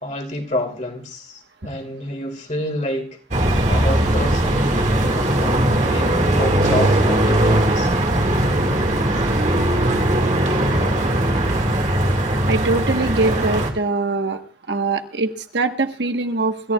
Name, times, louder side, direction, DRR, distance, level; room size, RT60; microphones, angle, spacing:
voice 1, 0.0-3.1 3.7-4.9 5.1-7.9, left 1 dB, 40° left, 3 dB, 2.7 m, -28 dB
sound 1, 3.3-13.7, right 1 dB, 40° right, 1.9 m, -19 dB
voice 2, 12.5-14.4 14.7-16.7, right 3 dB, 70° right, 6 dB, 1.3 m, -22 dB
26.5 x 14.5 x 2.4 m, 0.39 s
head